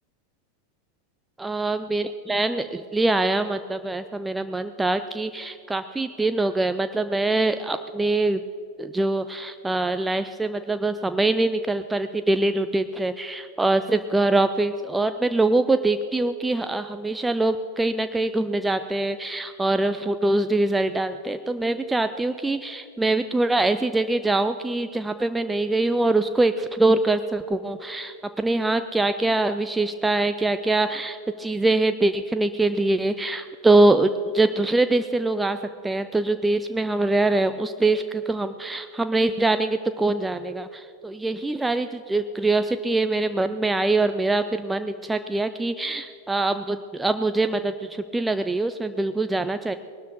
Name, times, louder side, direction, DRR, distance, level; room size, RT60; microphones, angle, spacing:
voice 1, 1.4-8.4 8.8-35.6 35.8-49.8, right 2 dB, 10° right, 10 dB, 0.4 m, -23 dB
20.0 x 12.5 x 4.1 m, 2.5 s
figure-of-eight pair, 90°, 0 cm